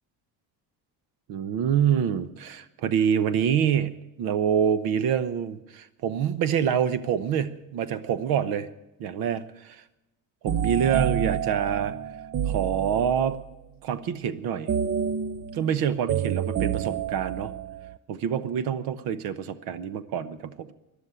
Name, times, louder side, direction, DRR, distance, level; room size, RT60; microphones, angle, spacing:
voice 1, 1.3-8.7 9.0-9.8 10.4-12.0 12.5-13.4 13.8-14.7 15.5-17.5 18.1-20.7, right 8 dB, 75° right, 14 dB, 1.0 m, -26 dB
sound 1, 10.5-13.5 14.7-18.0, right 9 dB, 40° right, 0.5 m, -29 dB
13.5 x 11.5 x 8.1 m, 0.93 s
cardioid pair, 135°, 37 cm